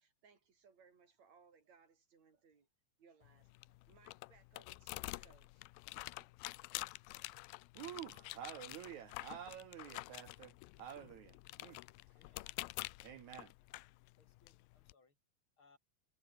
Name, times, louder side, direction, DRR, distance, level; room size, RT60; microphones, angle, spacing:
voice 1, 0.0-2.7 3.0-5.7 6.2-6.4, right 5 dB, 45° right, 5.2 m, -67 dB
sound 1, 3.2-14.9, left 22 dB, 80° left, 2.3 m, -49 dB
voice 2, 7.8-11.8 13.0-13.5, right 10 dB, 70° right, 1.9 m, -50 dB
voice 3, 12.1-12.5 13.3-13.8 14.2-15.1 15.6-15.8, left 4 dB, 35° left, 5.2 m, -70 dB
omnidirectional pair, 4.4 m